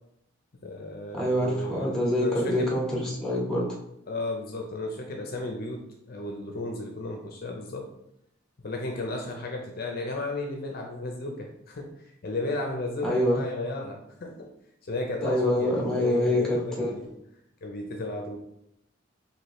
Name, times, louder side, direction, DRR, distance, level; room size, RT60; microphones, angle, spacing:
voice 1, 0.6-3.2 4.1-7.9 8.6-14.5 14.8-17.1 17.6-18.4, left 2 dB, 50° left, 2 dB, 0.5 m, -34 dB
voice 2, 1.1-3.7 13.0-13.4 15.2-16.9, left 1 dB, 5° left, -4 dB, 1.1 m, -26 dB
4.7 x 2.8 x 3.0 m, 0.78 s
head